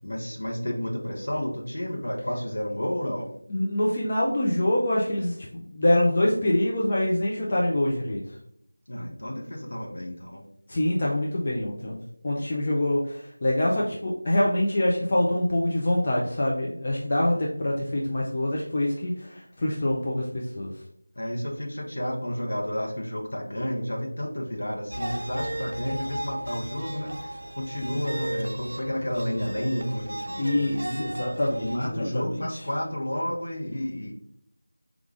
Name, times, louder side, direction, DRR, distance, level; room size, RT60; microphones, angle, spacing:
voice 1, 0.0-3.3 8.9-10.4 21.1-31.1 31.4-34.1, equal, 55° left, 0 dB, 0.8 m, -31 dB
voice 2, 3.5-8.4 10.7-20.7 30.4-32.6, left 1 dB, 25° left, -4 dB, 0.3 m, -25 dB
sound 1, 24.9-31.8, right 1 dB, 70° right, 0.4 m, -36 dB
4.7 x 2.3 x 2.4 m, 0.70 s
figure-of-eight pair, 175°, 0 cm